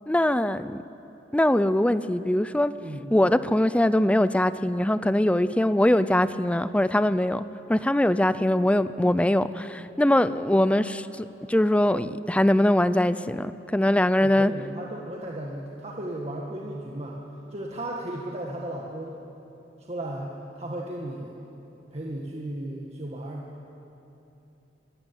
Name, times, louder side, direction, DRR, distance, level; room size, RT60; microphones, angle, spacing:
voice 1, 0.1-0.8 1.3-2.7 3.1-7.4 7.7-14.5, left 1 dB, 5° left, 14 dB, 0.5 m, -22 dB
voice 2, 2.7-3.1 14.2-17.2 17.5-19.2 19.8-21.4 21.9-23.4, right 1 dB, 35° right, -2 dB, 1.8 m, -35 dB
23.5 x 14.5 x 9.9 m, 3.0 s
head